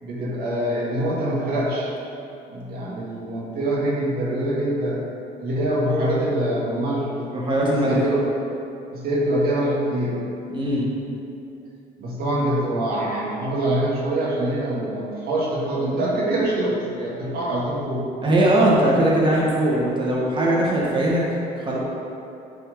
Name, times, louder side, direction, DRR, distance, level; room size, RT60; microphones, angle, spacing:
voice 1, 0.0-1.9 2.5-5.0 5.4-7.3 7.7-8.2 8.9-10.2 12.0-18.1, right 1 dB, 65° right, -5 dB, 1.9 m, -24 dB
voice 2, 7.3-8.0 10.5-10.8 18.2-21.2 21.6-21.8, right 1 dB, 30° right, -5 dB, 1.7 m, -20 dB
9.7 x 4.6 x 4.9 m, 2.8 s
cardioid pair, 110°, 17 cm